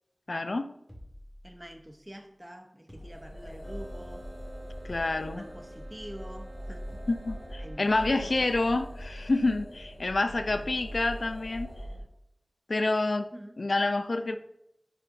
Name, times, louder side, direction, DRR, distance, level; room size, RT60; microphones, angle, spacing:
voice 1, 0.3-0.7 4.8-5.5 7.1-11.7 12.7-13.3 13.6-14.4, left 2 dB, 85° left, 0.4 m, -28 dB
sound 1, 0.9-2.0 2.9-3.8 4.9-5.6 6.9-7.4, equal, 5° left, 1.6 m, -49 dB
voice 2, 1.4-4.3 5.1-7.1 7.6-8.5 10.3-10.8 13.3-13.6, equal, 15° right, 0.8 m, -46 dB
sound 2, 2.9-12.0, equal, 65° left, 1.4 m, -42 dB
sound 3, 3.6-10.0, right 1 dB, 60° right, 1.6 m, -52 dB
9.8 x 4.4 x 2.6 m
wide cardioid pair, 50°, 0 cm